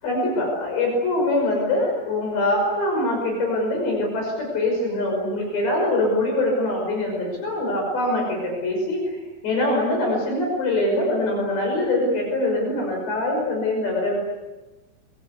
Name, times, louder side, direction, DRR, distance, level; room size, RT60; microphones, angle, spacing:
voice 1, 0.0-9.2 9.4-14.2, left 1 dB, 55° left, 0 dB, 7.8 m, -23 dB
26.5 x 24.0 x 8.4 m, 1.1 s
omnidirectional pair, 5.9 m